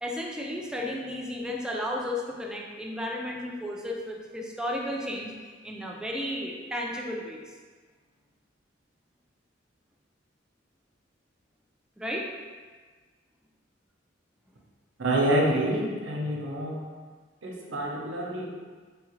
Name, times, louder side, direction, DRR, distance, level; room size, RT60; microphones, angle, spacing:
voice 1, 0.0-5.3 5.6-7.4 12.0-12.3, left 1 dB, 5° right, -1 dB, 0.3 m, -33 dB
voice 2, 15.0-16.8 17.4-18.4, right 1 dB, 85° right, -2 dB, 0.6 m, -27 dB
3.2 x 2.4 x 3.1 m, 1.5 s
head